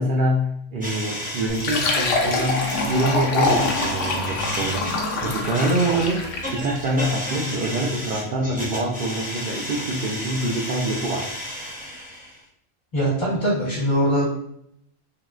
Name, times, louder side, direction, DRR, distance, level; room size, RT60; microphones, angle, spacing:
voice 1, 0.0-4.9 5.2-11.3, right 1 dB, 70° right, -2 dB, 0.4 m, -25 dB
sound 1, 0.8-12.4, equal, 10° right, 0.4 m, -32 dB
Fill (with liquid), 1.5-6.6, left 3 dB, 70° left, 0.9 m, -25 dB
voice 2, 12.9-14.5, right 1 dB, 35° left, -8 dB, 1.6 m, -22 dB
3.6 x 2.3 x 2.4 m, 0.70 s
omnidirectional pair, 1.4 m